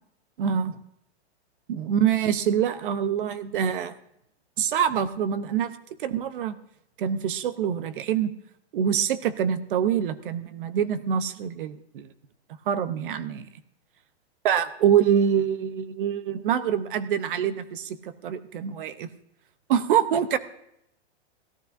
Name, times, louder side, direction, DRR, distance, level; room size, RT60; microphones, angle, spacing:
voice 1, 0.4-0.8 1.7-3.9 4.6-5.7 6.0-6.6 7.0-8.3 8.7-12.1 12.7-13.5 14.4-19.1 19.7-20.4, right 8 dB, 50° right, 14 dB, 0.7 m, -25 dB
17.5 x 12.5 x 2.6 m, 0.77 s
supercardioid pair, 170°, 33 cm